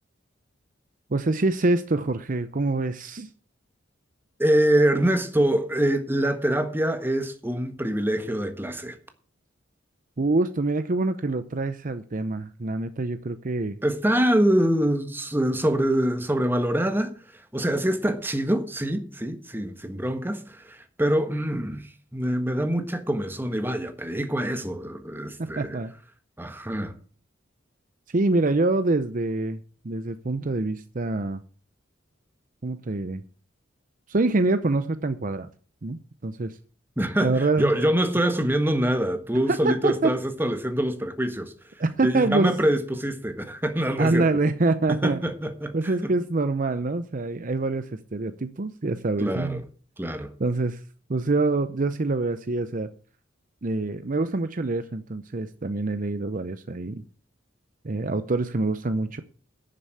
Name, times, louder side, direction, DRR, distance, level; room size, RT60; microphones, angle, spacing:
voice 1, 1.1-3.3 10.2-13.8 25.4-25.9 28.1-31.4 32.6-33.2 34.1-35.5 35.8-36.6 37.2-37.8 39.5-40.1 41.8-42.5 44.0-45.2 45.7-49.6 50.4-50.8 51.1-52.9 53.6-57.0 57.8-59.2, right 2 dB, 45° right, 0.7 m, -25 dB
voice 2, 4.4-9.0 13.8-25.8 26.4-26.9 37.0-41.5 42.0-44.3 44.9-45.7 46.0-46.1 49.2-49.6 50.0-50.3, right 1 dB, 10° right, 1.4 m, -25 dB
11.0 x 6.9 x 8.3 m
head